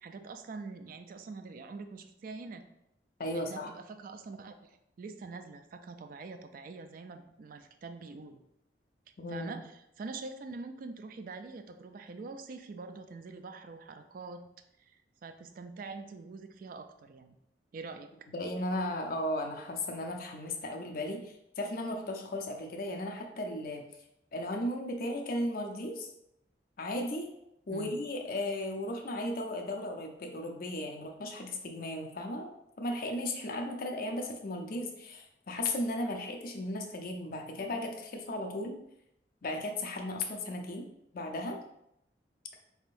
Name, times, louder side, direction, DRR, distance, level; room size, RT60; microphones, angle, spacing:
voice 1, 0.0-2.6 3.3-8.4 9.3-9.7 10.0-14.4 14.8-17.3 17.7-18.1 27.7-28.0, right 4 dB, 50° right, 8 dB, 0.3 m, -44 dB
voice 2, 3.2-3.7 9.2-9.5 18.3-23.8 24.3-26.1 26.8-27.3 27.7-32.5 32.8-38.8 39.4-40.9 41.1-41.6, left 1 dB, 55° left, 3 dB, 0.6 m, -35 dB
4.3 x 3.5 x 2.5 m, 0.80 s
head